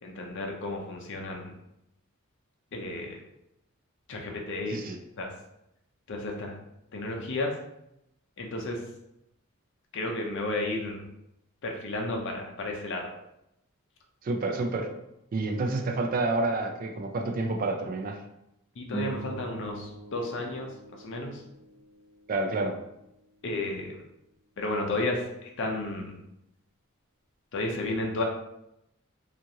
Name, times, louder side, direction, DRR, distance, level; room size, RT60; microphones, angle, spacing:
voice 1, 0.0-1.5 2.7-3.2 4.1-4.8 5.2-5.3 6.1-6.5 6.9-7.5 8.4-8.8 9.9-11.1 11.6-13.1 18.8-20.7 21.0-21.4 23.4-24.0 24.6-26.2 27.5-28.2, left 2 dB, 60° left, 1 dB, 0.5 m, -32 dB
voice 2, 14.2-14.9 15.3-18.2 22.3-22.8, right 2 dB, 40° right, 3 dB, 0.3 m, -29 dB
sound 1, 18.9-23.4, right 4 dB, 15° left, 1.0 m, -42 dB
2.9 x 2.4 x 2.6 m, 0.83 s
head